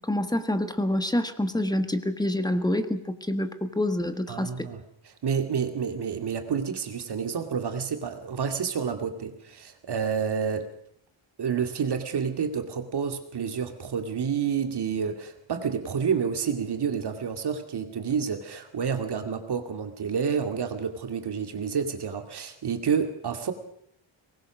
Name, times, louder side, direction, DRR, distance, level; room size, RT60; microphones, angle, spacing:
voice 1, 0.0-4.7, left 1 dB, 10° left, 9 dB, 1.5 m, -27 dB
voice 2, 4.3-10.7 11.4-23.5, right 6 dB, 50° right, 6 dB, 2.4 m, -29 dB
23.0 x 20.0 x 6.3 m, 0.73 s
wide cardioid pair, 140°, 50 cm